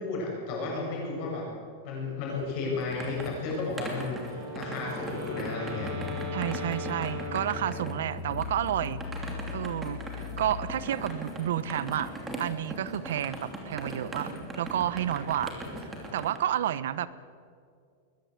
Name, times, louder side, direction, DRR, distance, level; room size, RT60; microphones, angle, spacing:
voice 1, 0.0-1.5 1.8-5.9, left 3 dB, 35° left, -2 dB, 7.7 m, -33 dB
sound 1, 2.4-16.4, right 1 dB, 10° right, 2.7 m, -40 dB
Wind instrument woodwind instrument, 4.1-8.2, left 1 dB, 40° right, 5.3 m, -39 dB
sound 2, 5.7-11.1, left 6 dB, 55° left, 2.3 m, -40 dB
voice 2, 6.3-12.1 12.4-15.6 16.1-17.1, right 11 dB, 70° right, 16 dB, 1.0 m, -31 dB
21.5 x 21.0 x 8.0 m, 2.2 s
supercardioid pair, 180°, 0 cm